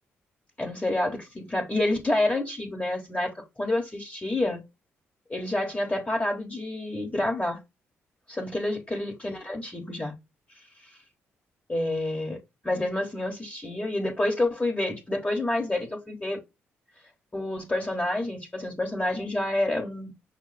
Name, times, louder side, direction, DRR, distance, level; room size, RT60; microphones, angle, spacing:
voice 1, 0.6-4.6 5.3-7.6 8.3-10.1 10.8-10.9 11.7-12.4 12.6-16.4 17.3-20.1, left 1 dB, 20° left, 1.4 m, -28 dB
5.7 x 2.0 x 4.1 m
hypercardioid pair, 45°, 6 cm